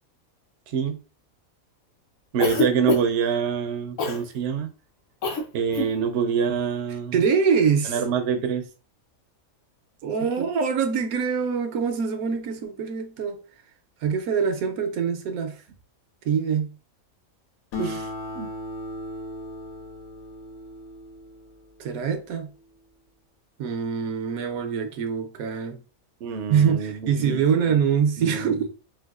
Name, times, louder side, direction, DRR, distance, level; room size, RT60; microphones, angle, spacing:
voice 1, 2.3-4.7 5.5-7.1 7.9-8.6 10.4-10.5 17.8-18.1 18.4-18.5 26.2-27.4 27.7-27.8 28.2-28.7, right 6 dB, 65° right, 0.8 m, -26 dB
Cough, 2.4-3.3 4.0-4.2 5.2-5.4 5.7-5.9, left 3 dB, 65° left, 1.1 m, -25 dB
voice 2, 7.1-8.0 10.0-13.4 14.0-15.6 16.2-16.7 21.8-22.5 23.6-25.8 26.5-28.7, right 6 dB, 85° right, 1.1 m, -24 dB
Acoustic guitar, 17.7-22.6, left 2 dB, 85° left, 1.2 m, -37 dB
4.5 x 2.3 x 2.3 m
omnidirectional pair, 1.5 m